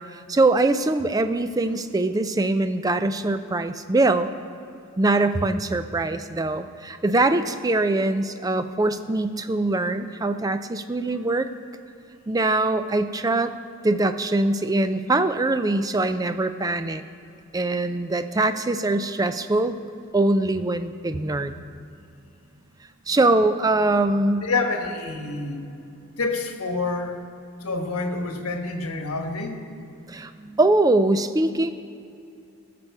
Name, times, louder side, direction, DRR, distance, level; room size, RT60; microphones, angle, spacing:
voice 1, 0.0-4.3 5.0-11.5 12.3-13.5 13.8-17.0 17.5-19.8 20.1-21.5 23.1-24.5 30.1-31.7, right 2 dB, 15° right, 10 dB, 0.3 m, -22 dB
voice 2, 24.4-25.6 26.2-27.2 27.6-29.6, left 3 dB, 90° left, 4 dB, 1.2 m, -27 dB
17.0 x 6.8 x 4.7 m, 2.6 s
head